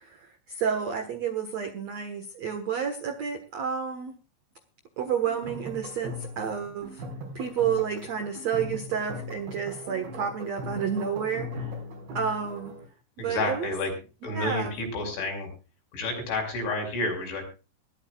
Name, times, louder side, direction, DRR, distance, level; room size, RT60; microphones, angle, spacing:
voice 1, 0.0-4.2 5.0-7.0 7.3-11.7 12.1-12.7 13.2-13.7 14.3-14.8, right 7 dB, 65° right, 8 dB, 1.6 m, -30 dB
sound 1, 5.3-12.8, left 1 dB, 50° right, 6.9 m, -39 dB
voice 2, 13.2-13.9 14.2-15.5 15.9-17.5, left 2 dB, 70° left, 3 dB, 7.9 m, -30 dB
21.5 x 13.5 x 2.4 m, 0.32 s
omnidirectional pair, 5.6 m